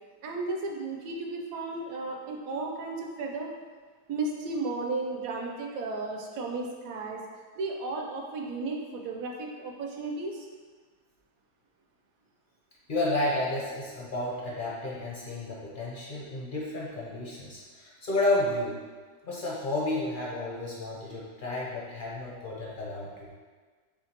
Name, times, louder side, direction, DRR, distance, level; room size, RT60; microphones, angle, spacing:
voice 1, 0.2-3.5 4.1-7.2 7.6-10.5, right 3 dB, 65° right, 0 dB, 1.0 m, -34 dB
voice 2, 12.9-18.8 19.3-23.3, left 2 dB, 50° left, -5 dB, 0.6 m, -31 dB
4.9 x 3.4 x 2.9 m, 1.5 s
omnidirectional pair, 1.8 m